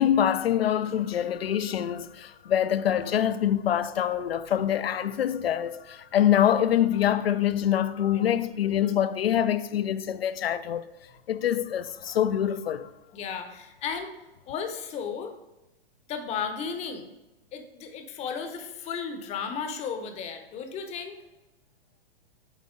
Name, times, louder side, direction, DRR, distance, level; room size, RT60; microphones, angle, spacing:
voice 1, 0.0-10.9 11.3-12.9, left 10 dB, 80° left, 0.5 m, -25 dB
voice 2, 13.1-14.1 14.5-15.3 16.1-17.1 17.5-21.2, left 6 dB, 20° left, 0.7 m, -34 dB
8.1 x 4.1 x 3.7 m
hypercardioid pair, 120°, 30 cm